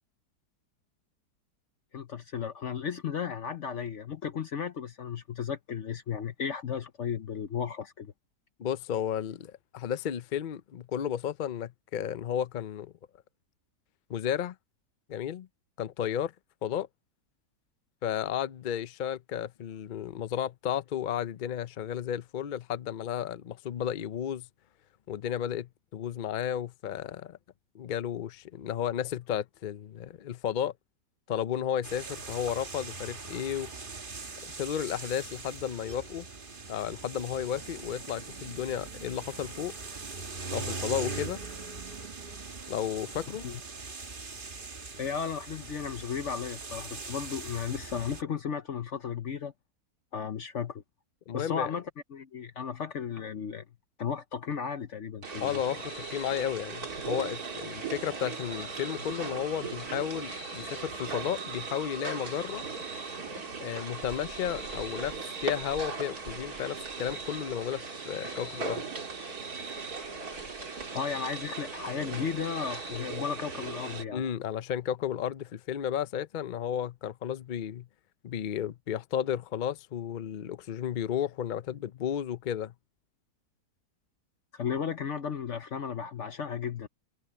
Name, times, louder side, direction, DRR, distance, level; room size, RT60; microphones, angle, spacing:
voice 1, 1.9-8.1 43.4-43.6 45.0-49.5 50.1-50.8 51.3-51.8 52.1-53.6 54.0-55.6 70.9-74.2 84.5-86.9, left 7 dB, 55° left, 0.9 m, -34 dB
voice 2, 8.6-12.9 14.1-14.5 15.1-15.5 15.8-16.3 16.6-16.9 18.0-24.5 25.1-27.4 27.7-30.7 31.3-33.7 34.6-36.3 36.7-39.7 40.5-41.4 42.7-43.5 51.3-51.7 55.4-62.6 63.6-68.8 74.1-77.9 78.2-82.7, left 9 dB, 85° left, 0.4 m, -33 dB
sound 1, 31.8-48.2, right 4 dB, 35° right, 1.5 m, -41 dB
sound 2, 55.2-74.0, right 4 dB, 65° right, 3.1 m, -38 dB
omnidirectional pair, 1.7 m